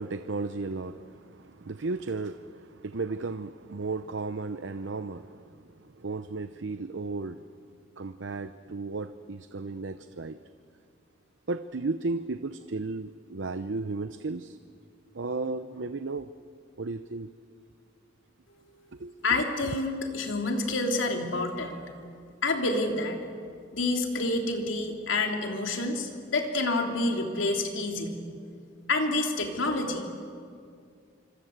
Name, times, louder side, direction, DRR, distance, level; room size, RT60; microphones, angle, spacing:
voice 1, 0.0-7.4 8.0-10.4 11.5-14.6 15.1-16.3 16.8-17.3 19.0-19.1, right 3 dB, 70° right, 11 dB, 0.7 m, -34 dB
voice 2, 19.2-21.9 22.4-23.2 23.7-28.2 28.9-30.1, left 2 dB, 85° left, 3 dB, 3.4 m, -28 dB
26.0 x 25.5 x 8.1 m, 2.2 s
head